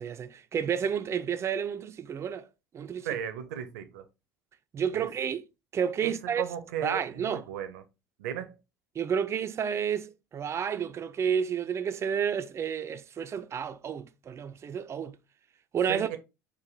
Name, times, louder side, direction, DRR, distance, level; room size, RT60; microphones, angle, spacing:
voice 1, 0.0-2.5 2.7-3.1 4.7-5.4 5.7-6.4 6.8-7.4 9.0-15.2 15.7-16.1, right 7 dB, 30° right, 0.4 m, -30 dB
voice 2, 3.0-4.0 4.9-5.1 6.0-7.8 8.2-8.5 15.9-16.2, right 9 dB, 70° right, 0.7 m, -35 dB
4.6 x 2.5 x 3.8 m
figure-of-eight pair, 65°, 9 cm